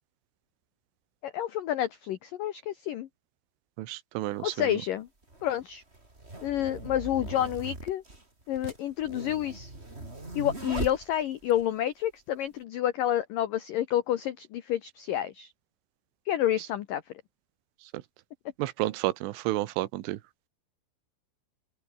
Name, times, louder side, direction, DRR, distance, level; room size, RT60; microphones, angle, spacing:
voice 1, 1.2-3.1 4.4-5.1 5.4-5.8 6.4-8.0 8.5-9.7 10.4-15.5 16.3-17.0, left 11 dB, 85° left, 1.9 m, -29 dB
voice 2, 3.8-4.5 18.6-20.2, right 16 dB, 85° right, 3.7 m, -30 dB
sound 1, 4.2-4.3 5.2-11.6, right 2 dB, 15° right, 4.3 m, -40 dB
open air
omnidirectional pair, 5.6 m